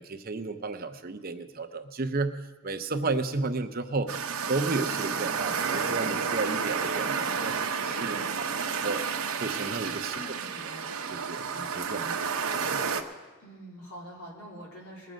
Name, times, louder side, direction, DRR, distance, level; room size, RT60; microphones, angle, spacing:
voice 1, 0.0-4.1 4.5-9.0 9.4-10.2 11.1-12.2 12.7-12.8, right 3 dB, 40° right, 8 dB, 0.7 m, -33 dB
sound 1, 4.1-13.0, right 6 dB, 80° right, 1.0 m, -31 dB
voice 2, 10.1-11.1 13.4-15.1, equal, 80° left, -4 dB, 3.7 m, -45 dB
21.0 x 7.6 x 5.2 m, 1.3 s
head